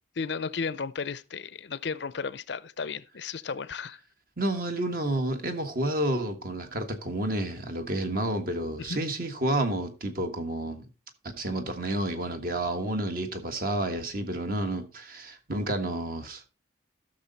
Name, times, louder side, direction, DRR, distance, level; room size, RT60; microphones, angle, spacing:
voice 1, 0.2-4.0 8.8-9.0, left 5 dB, 60° left, 0.5 m, -34 dB
voice 2, 4.4-10.8 11.4-16.5, right 1 dB, 45° right, 1.6 m, -30 dB
13.5 x 6.7 x 4.1 m
head